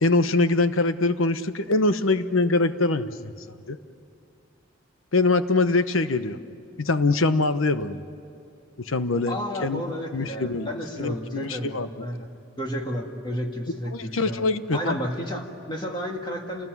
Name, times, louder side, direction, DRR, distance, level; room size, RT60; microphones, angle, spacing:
voice 1, 0.0-3.3 3.7-3.8 5.1-6.4 6.8-8.0 8.9-9.3 9.6-9.8 10.1-10.7 11.0-12.1 13.9-15.0, left 3 dB, 80° left, 11 dB, 1.0 m, -23 dB
voice 2, 9.3-12.3 12.6-16.7, equal, 25° left, 1 dB, 2.0 m, -32 dB
28.0 x 20.0 x 9.5 m, 2.5 s
head